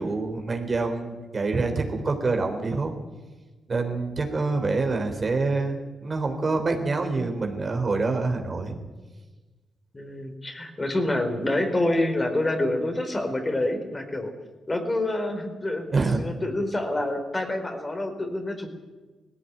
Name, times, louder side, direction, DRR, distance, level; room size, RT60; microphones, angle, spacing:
voice 1, 0.0-2.9 3.7-8.8 15.9-16.2, right 3 dB, 40° right, 3 dB, 3.6 m, -26 dB
voice 2, 9.9-14.3 14.7-15.9 16.2-18.7, left 1 dB, 25° left, 5 dB, 4.2 m, -27 dB
18.5 x 16.0 x 9.4 m, 1.3 s
supercardioid pair, 60°, 0 cm